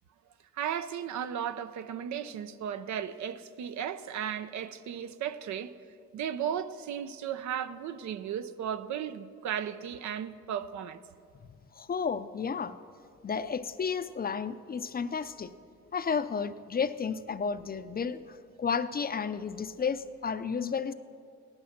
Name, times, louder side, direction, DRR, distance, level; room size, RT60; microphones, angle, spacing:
voice 1, 0.5-5.7 6.1-11.0, right 9 dB, 70° right, 0.7 m, -35 dB
voice 2, 11.7-12.8 13.2-15.5 15.9-20.9, left 6 dB, 30° left, 0.5 m, -32 dB
17.0 x 11.0 x 5.8 m
cardioid pair, 90°, 30 cm